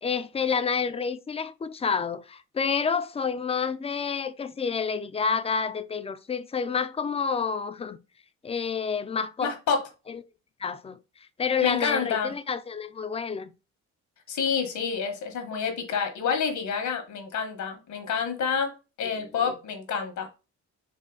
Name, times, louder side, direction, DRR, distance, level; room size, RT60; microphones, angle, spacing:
voice 1, 0.0-8.0 8.4-9.6 10.1-10.2 10.6-11.0 11.4-13.5 19.4-19.5, left 6 dB, 20° left, 0.4 m, -29 dB
voice 2, 9.4-9.8 11.6-12.3 14.3-20.3, left 6 dB, 70° left, 1.3 m, -28 dB
4.1 x 2.7 x 3.8 m
cardioid pair, 90°, 30 cm